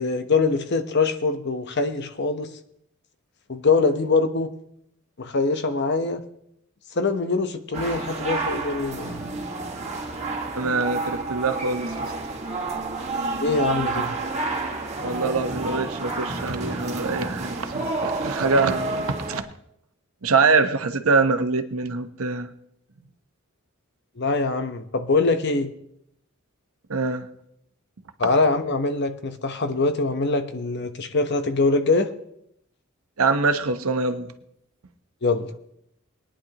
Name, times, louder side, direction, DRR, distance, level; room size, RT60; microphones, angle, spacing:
voice 1, 0.0-2.5 3.5-4.5 5.2-6.2 6.9-9.2 13.4-14.2 24.2-25.7 28.2-32.1 35.2-35.5, left 3 dB, 55° left, 8 dB, 0.9 m, -23 dB
sound 1, 7.7-19.4, right 3 dB, 30° right, 1.7 m, -30 dB
voice 2, 10.5-12.1 15.0-19.5 20.2-22.5 26.9-27.3 33.2-34.3, right 4 dB, 90° right, 8 dB, 0.9 m, -24 dB
21.0 x 10.0 x 2.9 m, 0.75 s
head